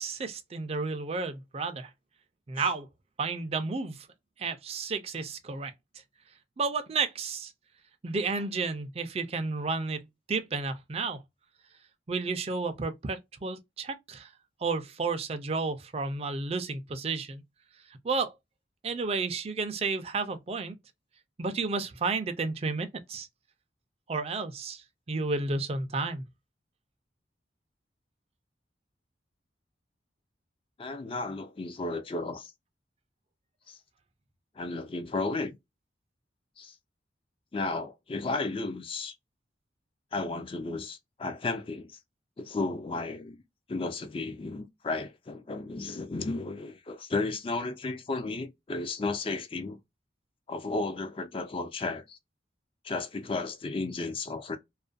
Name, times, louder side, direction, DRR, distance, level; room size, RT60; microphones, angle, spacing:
voice 1, 0.0-1.9 2.5-2.9 3.2-4.1 4.4-5.7 6.6-7.5 8.0-11.2 12.1-14.3 14.6-17.4 17.9-18.3 18.8-20.8 21.4-23.3 24.1-26.2, right 4 dB, 35° right, 0.4 m, -32 dB
voice 2, 30.8-32.5 33.7-33.8 34.6-35.6 36.6-36.7 37.5-39.1 40.1-42.0 42.4-43.4 43.7-49.8 50.5-52.2 52.8-54.6, left 3 dB, 30° left, 0.4 m, -33 dB
2.4 x 2.2 x 2.4 m
head